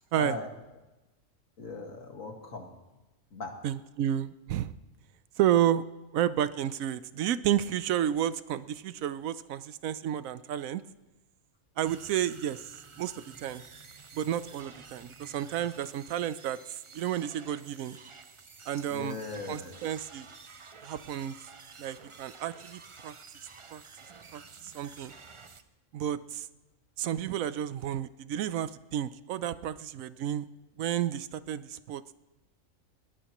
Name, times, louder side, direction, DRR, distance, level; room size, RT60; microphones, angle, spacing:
voice 1, 0.2-0.5 1.6-2.7 3.3-3.5 18.9-20.0, left 3 dB, 75° left, 2 dB, 2.3 m, -39 dB
voice 2, 3.6-4.7 5.4-5.8 6.1-10.8 11.8-13.6 14.1-18.0 18.7-19.2 19.5-20.3 20.8-21.4 21.8-23.1 23.4-23.8 24.3-25.1 25.9-26.5 27.0-30.5 30.8-32.2, right 11 dB, 85° right, 15 dB, 1.1 m, -31 dB
sound 1, 11.8-25.6, right 4 dB, 35° right, 0.5 m, -51 dB
21.0 x 18.0 x 3.0 m, 1.0 s
omnidirectional pair, 1.4 m